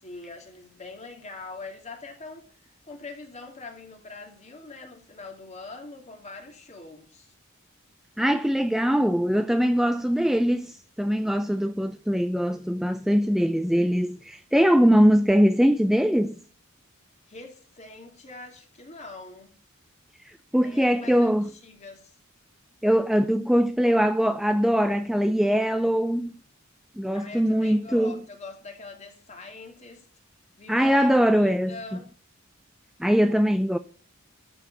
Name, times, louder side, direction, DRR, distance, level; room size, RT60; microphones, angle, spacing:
voice 1, 0.0-2.5 2.9-7.3 17.3-19.5 20.6-22.1 27.1-30.1 30.6-32.1, left 3 dB, 35° left, 2.8 m, -43 dB
voice 2, 8.2-16.4 20.3-21.5 22.8-26.3 27.0-28.2 30.7-32.0 33.0-33.8, equal, ahead, 0.4 m, -22 dB
12.5 x 4.7 x 7.9 m
head